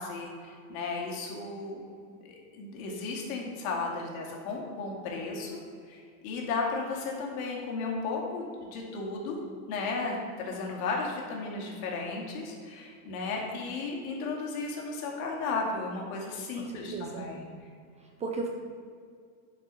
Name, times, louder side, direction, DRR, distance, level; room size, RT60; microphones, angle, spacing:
voice 1, 0.0-1.9 2.2-5.6 5.9-9.4 9.7-10.2 10.5-17.4, left 3 dB, 75° left, -1 dB, 2.3 m, -34 dB
voice 2, 16.6-17.3 18.0-18.5, right 4 dB, 15° right, 2 dB, 0.5 m, -36 dB
10.0 x 5.0 x 5.4 m, 2.2 s
cardioid pair, 165°, 42 cm